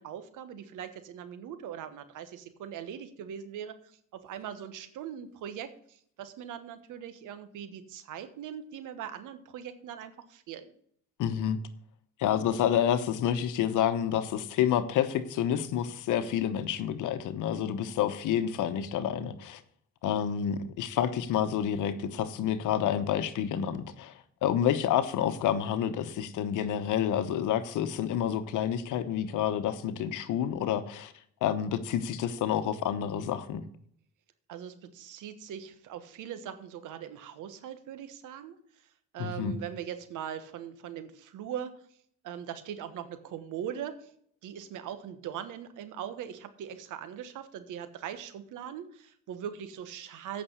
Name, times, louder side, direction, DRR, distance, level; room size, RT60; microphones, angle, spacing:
voice 1, 0.0-10.7 34.5-38.6 39.1-41.7 42.2-44.1 44.4-50.4, right 9 dB, 85° right, 11 dB, 1.3 m, -41 dB
voice 2, 11.2-11.6 12.2-19.6 20.0-24.1 24.4-31.1 31.4-33.6 39.2-39.6, left 9 dB, 85° left, 12 dB, 1.0 m, -29 dB
8.8 x 6.0 x 8.1 m, 0.65 s
cardioid pair, 90°, 30 cm